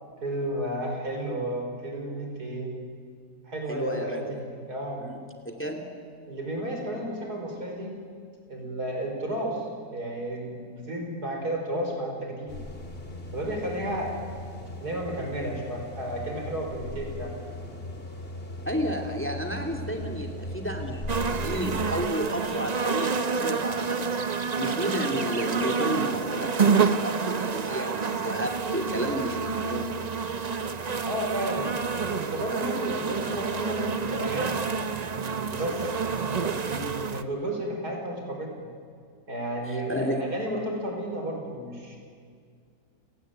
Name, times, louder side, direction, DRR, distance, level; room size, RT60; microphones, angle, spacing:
voice 1, 0.2-2.8 3.5-5.0 6.3-7.9 8.5-9.7 9.9-12.6 13.3-14.1 14.8-17.4 31.0-31.8 32.1-34.7 35.4-38.5 39.3-42.0, right 1 dB, 85° right, 1 dB, 5.8 m, -32 dB
voice 2, 3.7-4.4 5.0-5.2 5.4-5.8 18.7-24.1 24.6-30.4 39.7-40.2, equal, 10° left, 4 dB, 2.7 m, -32 dB
sound 1, 12.5-22.1, left 1 dB, 40° left, 2.5 m, -38 dB
sound 2, 21.1-37.2, right 5 dB, 35° right, 0.8 m, -28 dB
29.0 x 18.5 x 9.4 m, 2.1 s
omnidirectional pair, 1.6 m